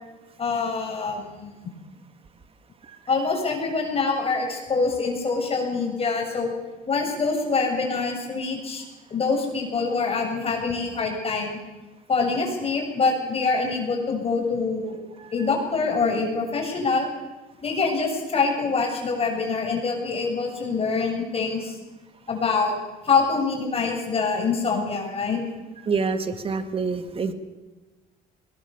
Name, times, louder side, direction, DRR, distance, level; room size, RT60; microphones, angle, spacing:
voice 1, 0.4-1.7 3.1-6.5 6.9-8.8 9.1-11.6 12.1-15.0 15.3-17.1 17.6-21.8 22.3-22.7 23.0-25.4, left 4 dB, 35° left, 1 dB, 7.2 m, -25 dB
voice 2, 25.9-27.3, right 5 dB, 35° right, 9 dB, 2.2 m, -26 dB
22.0 x 20.0 x 7.1 m, 1.2 s
cardioid pair, 110°, 17 cm